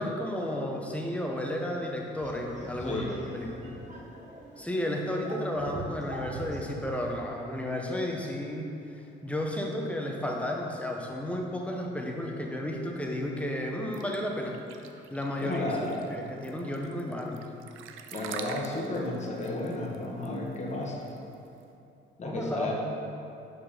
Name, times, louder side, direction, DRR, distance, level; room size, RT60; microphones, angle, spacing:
voice 1, 0.0-3.6 4.6-8.7 9.2-14.6 15.1-17.5 22.2-22.7, left 1 dB, 5° left, 0 dB, 0.8 m, -33 dB
sound 1, 2.2-7.2, right 1 dB, 35° right, 1.2 m, -43 dB
sound 2, 13.9-21.6, right 7 dB, 85° right, 0.4 m, -44 dB
voice 2, 15.4-16.1 18.1-21.1 22.2-22.7, left 2 dB, 35° left, -1 dB, 1.1 m, -33 dB
5.5 x 4.3 x 5.0 m, 2.7 s
cardioid pair, 90°, 20 cm